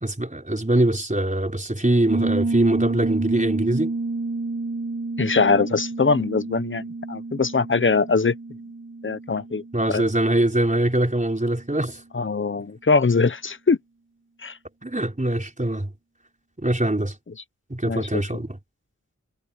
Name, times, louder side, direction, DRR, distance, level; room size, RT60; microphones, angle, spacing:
voice 1, 0.0-3.9 9.7-12.0 14.8-15.9 16.6-17.1 17.7-18.6, right 1 dB, 25° right, 4.4 m, -23 dB
Piano, 2.1-10.6, right 3 dB, 50° right, 3.2 m, -29 dB
voice 2, 5.2-8.3 9.0-9.6 9.9-10.0 12.1-13.8 14.4-14.6 17.8-18.4, left 4 dB, 40° left, 0.8 m, -22 dB
wide cardioid pair, 55°, 31 cm